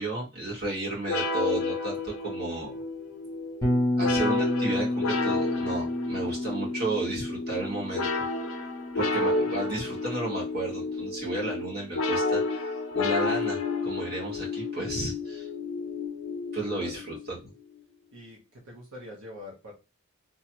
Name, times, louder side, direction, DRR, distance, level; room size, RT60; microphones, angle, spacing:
voice 1, 0.0-2.8 3.9-8.1 8.9-15.5 16.5-17.4, right 2 dB, 45° right, -5 dB, 1.4 m, -33 dB
sound 1, 1.1-17.3, left 3 dB, 70° left, 0.5 m, -31 dB
Bass guitar, 3.6-11.7, left 1 dB, 15° left, 0.8 m, -31 dB
voice 2, 16.8-17.4 18.1-19.7, left 1 dB, 80° right, -2 dB, 0.9 m, -45 dB
3.0 x 2.4 x 2.9 m, 0.28 s
head